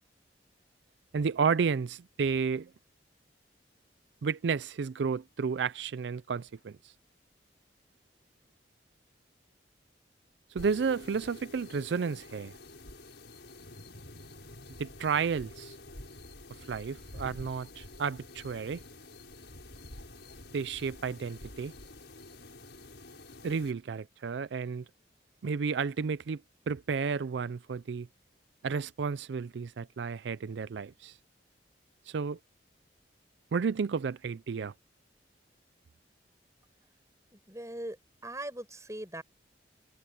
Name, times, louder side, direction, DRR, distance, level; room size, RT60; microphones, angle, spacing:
voice 1, 1.1-2.7 4.2-6.9 10.5-12.5 14.8-15.8 16.7-18.8 20.5-21.7 23.4-24.8 25.4-26.4 26.7-28.1 28.6-31.2 32.1-32.4 33.5-34.7, right 5 dB, 75° right, 0.4 m, -32 dB
sound 1, 10.6-23.7, left 2 dB, 70° left, 6.2 m, -48 dB
voice 2, 37.3-38.0 38.2-39.2, right 1 dB, 15° right, 6.4 m, -40 dB
head